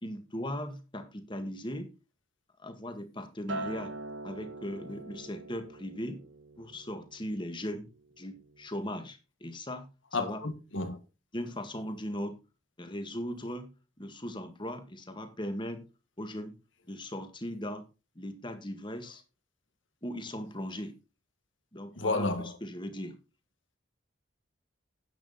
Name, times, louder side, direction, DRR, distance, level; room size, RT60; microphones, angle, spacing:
voice 1, 0.0-1.9 2.6-3.9 4.2-6.2 6.6-7.9 8.2-9.9 10.2-10.4 11.3-12.4 12.8-13.7 14.0-15.9 16.2-16.5 16.9-17.9 18.2-19.2 20.0-21.0 21.7-23.2, equal, 25° left, 1.8 m, -38 dB
Acoustic guitar, 3.5-7.9 8.3-8.7, right 2 dB, 70° right, 1.4 m, -43 dB
voice 2, 10.1-11.0 22.0-22.5, left 3 dB, 80° left, 1.8 m, -31 dB
10.5 x 8.8 x 4.2 m
head